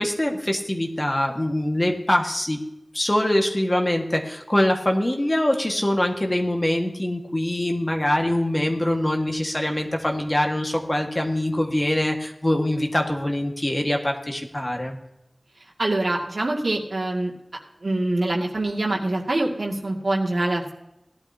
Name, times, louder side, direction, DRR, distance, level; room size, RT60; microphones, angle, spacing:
voice 1, 0.0-2.6 2.9-15.0, left 1 dB, 25° left, 3 dB, 1.7 m, -23 dB
voice 2, 15.8-17.3 17.8-20.7, right 2 dB, 70° right, -1 dB, 2.2 m, -24 dB
18.0 x 11.5 x 2.8 m, 0.88 s
wide cardioid pair, 65°, 0 cm